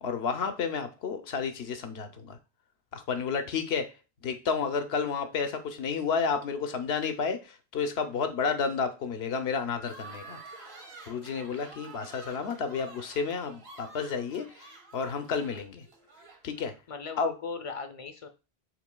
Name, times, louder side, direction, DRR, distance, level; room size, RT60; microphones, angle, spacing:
voice 1, 0.0-2.4 2.9-3.8 4.2-10.4 11.1-15.8 16.4-16.7 17.2-17.3, left 5 dB, 85° left, 7 dB, 1.0 m, -31 dB
sound 1, 9.8-16.7, right 3 dB, 80° right, 1.3 m, -49 dB
voice 2, 16.9-18.3, left 4 dB, 40° left, 8 dB, 0.5 m, -38 dB
6.0 x 3.9 x 2.2 m, 0.30 s
omnidirectional pair, 1.0 m